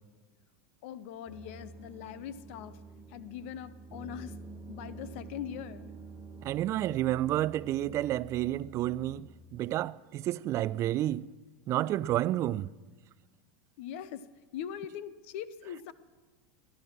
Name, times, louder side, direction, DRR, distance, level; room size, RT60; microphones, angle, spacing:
voice 1, 0.8-2.8 3.1-4.4 4.7-5.9 13.8-14.3 14.5-15.9, left 9 dB, 65° left, 0.7 m, -41 dB
sound 1, 1.3-9.2, right 3 dB, 15° right, 2.0 m, -48 dB
voice 2, 6.4-11.3 11.7-12.7, right 13 dB, 40° right, 0.4 m, -30 dB
18.5 x 11.0 x 6.1 m
hypercardioid pair, 100°, 7 cm